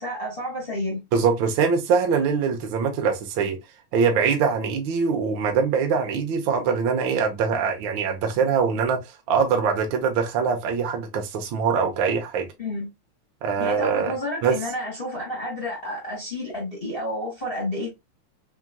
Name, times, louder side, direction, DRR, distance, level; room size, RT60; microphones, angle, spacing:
voice 1, 0.0-1.0 12.6-12.9 13.6-17.9, left 1 dB, 20° left, 1.6 m, -30 dB
voice 2, 1.1-3.6 3.9-9.0 9.3-12.5 13.4-14.1 14.4-14.6, right 6 dB, 80° right, 1.1 m, -23 dB
4.5 x 3.6 x 2.2 m
omnidirectional pair, 3.5 m